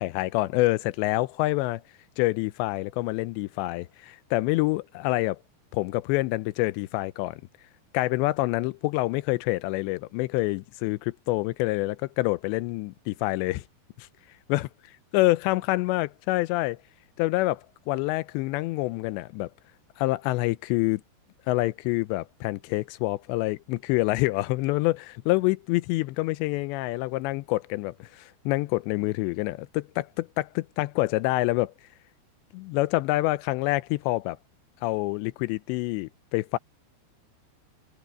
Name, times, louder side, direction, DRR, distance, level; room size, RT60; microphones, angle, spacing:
voice 1, 0.0-1.8 2.2-5.4 5.7-7.4 7.9-13.6 14.5-14.7 15.1-16.8 17.2-19.5 20.0-21.0 21.5-31.7 32.5-34.4 34.8-36.6, left 20 dB, 85° left, 2.8 m, -27 dB
omnidirectional pair, 5.1 m